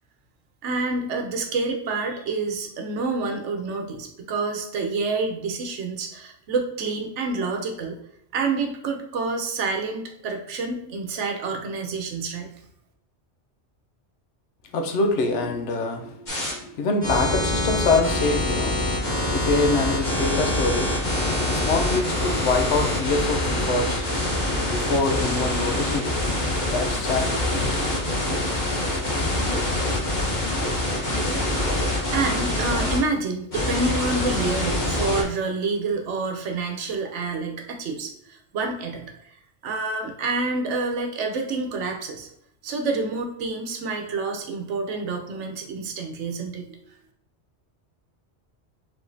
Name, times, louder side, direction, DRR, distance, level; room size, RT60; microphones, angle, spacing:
voice 1, 0.6-8.0 8.3-12.5 32.1-39.1 39.6-42.3 42.6-46.8, right 3 dB, 90° right, 3 dB, 1.0 m, -28 dB
voice 2, 14.7-18.9 19.3-24.0 24.7-26.2 26.6-27.3, left 3 dB, 90° left, 4 dB, 1.0 m, -25 dB
sound 1, 16.3-16.5 17.0-33.0 33.5-35.2, left 1 dB, 40° left, 1.2 m, -25 dB
sound 2, 21.5-28.0, left 1 dB, 65° left, 1.4 m, -45 dB
4.9 x 3.8 x 2.6 m, 0.78 s
omnidirectional pair, 1.2 m